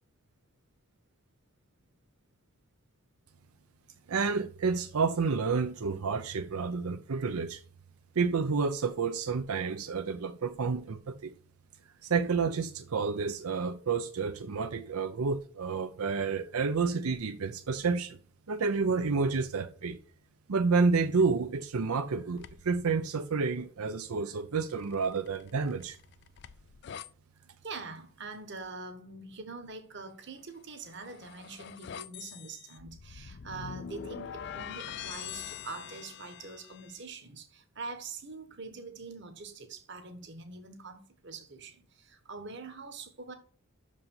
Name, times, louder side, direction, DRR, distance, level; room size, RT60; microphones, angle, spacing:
voice 1, 4.1-7.6 8.2-11.3 12.0-18.2 18.5-20.0 20.5-26.0, right 4 dB, 85° right, 0.6 m, -30 dB
sound 1, 22.4-22.8 24.7-27.1 30.6-37.0, left 8 dB, 50° left, 0.4 m, -44 dB
voice 2, 27.6-43.3, right 4 dB, 55° right, 1.3 m, -44 dB
6.4 x 5.2 x 7.0 m
head